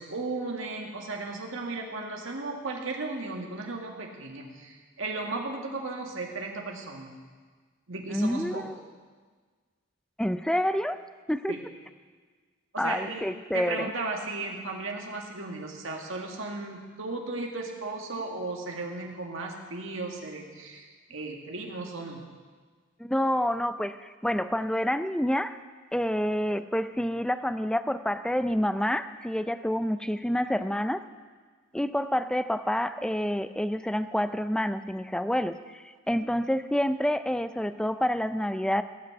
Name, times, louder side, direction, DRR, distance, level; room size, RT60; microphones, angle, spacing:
voice 1, 0.0-7.2 7.9-8.6 11.5-11.6 12.7-22.2, right 3 dB, 70° right, 1 dB, 2.0 m, -35 dB
voice 2, 8.1-8.7 10.2-11.0 11.3-11.5 12.8-13.9 23.0-25.6 25.9-31.0 31.7-38.8, equal, 5° left, 11 dB, 0.4 m, -28 dB
17.5 x 6.2 x 7.9 m, 1.5 s
head